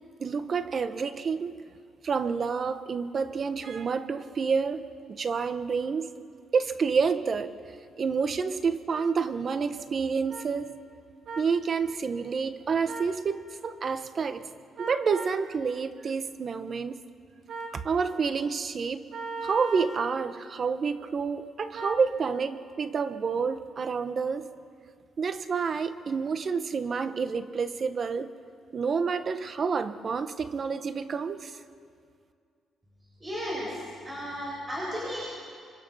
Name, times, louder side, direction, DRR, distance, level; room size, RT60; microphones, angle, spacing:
voice 1, 0.2-1.6 2.0-6.2 6.5-7.5 8.0-10.7 11.4-14.4 14.8-17.0 17.7-19.1 19.4-24.5 25.2-28.3 28.7-31.6, right 5 dB, 45° right, 11 dB, 1.2 m, -29 dB
sound 1, 8.9-9.0 10.3-10.4 11.3-11.5 12.9-13.1 14.8-15.4 17.5-17.8 19.1-20.0 21.7-22.0, right 4 dB, 65° right, 3.3 m, -37 dB
voice 2, 33.2-35.2, equal, 20° right, -5 dB, 7.5 m, -34 dB
26.5 x 25.5 x 5.7 m, 2.2 s
cardioid pair, 90°, 0 cm